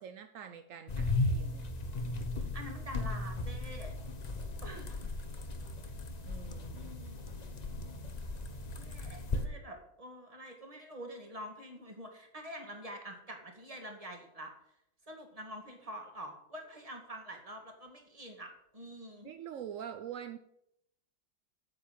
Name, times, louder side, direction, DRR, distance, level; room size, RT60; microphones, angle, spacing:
voice 1, 0.0-1.6 6.2-6.9 19.2-20.4, right 9 dB, 70° right, 8 dB, 0.7 m, -45 dB
sound 1, 0.9-9.4, left 2 dB, 40° left, 0.6 m, -36 dB
voice 2, 2.4-3.9 4.6-5.1 6.7-7.8 8.7-14.5 15.1-19.3, equal, 20° right, 3 dB, 1.9 m, -47 dB
9.1 x 8.0 x 7.4 m, 0.78 s
omnidirectional pair, 2.1 m